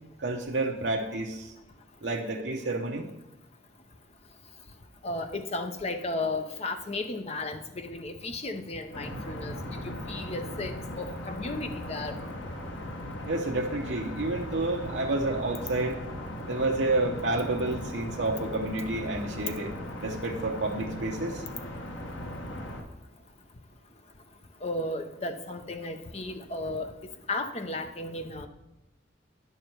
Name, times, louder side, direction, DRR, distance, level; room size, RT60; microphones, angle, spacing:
voice 1, 0.2-1.5 2.0-3.1 13.3-16.0 16.5-19.7 20.0-21.4, right 2 dB, 65° right, -1 dB, 0.8 m, -29 dB
voice 2, 5.0-12.2 24.6-26.9 27.3-28.5, left 2 dB, 30° left, 7 dB, 0.7 m, -34 dB
sound 1, 8.9-22.8, left 1 dB, 80° left, 1.3 m, -38 dB
10.0 x 6.8 x 4.5 m, 0.91 s
head